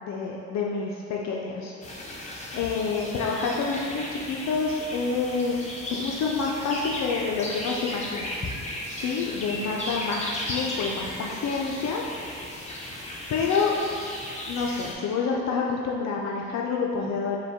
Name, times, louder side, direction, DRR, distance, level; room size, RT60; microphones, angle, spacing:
voice 1, 0.0-1.7 2.1-8.3 8.9-12.0 12.6-12.9 13.3-13.7 14.5-17.4, left 5 dB, 65° left, -1 dB, 0.4 m, -28 dB
sound 1, 1.8-14.9, left 1 dB, 25° left, 0.7 m, -35 dB
4.9 x 2.2 x 3.5 m, 2.4 s
cardioid pair, 90°, 30 cm